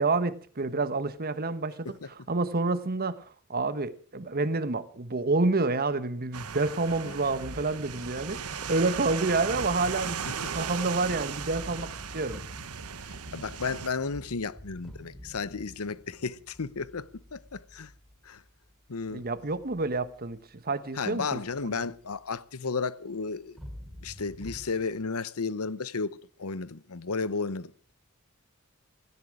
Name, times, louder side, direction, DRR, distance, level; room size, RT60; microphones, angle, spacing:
voice 1, 0.0-12.4 19.1-21.4 21.7-21.8, right 3 dB, 45° right, 1.2 m, -29 dB
sound 1, 6.3-22.9 23.5-24.9, equal, ahead, 3.5 m, -49 dB
sound 2, 6.3-13.9, right 7 dB, 85° right, 1.2 m, -37 dB
voice 2, 13.3-17.9 18.2-18.4 18.9-19.3 21.0-23.6 24.0-27.7, left 4 dB, 75° left, 0.9 m, -33 dB
17.0 x 16.5 x 4.9 m
head